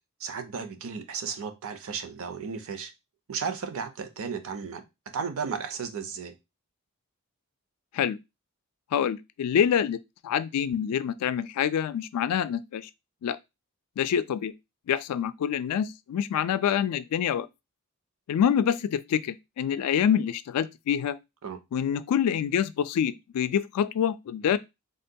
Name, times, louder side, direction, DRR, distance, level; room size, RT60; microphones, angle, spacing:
voice 1, 0.2-2.9 3.3-6.3 21.4-21.6, right 6 dB, 65° right, 0.5 m, -34 dB
voice 2, 8.9-12.9 13.2-13.4 14.0-14.5 14.9-17.5 18.3-21.2 21.7-24.6, left 8 dB, 90° left, 0.3 m, -26 dB
3.7 x 2.2 x 2.6 m
head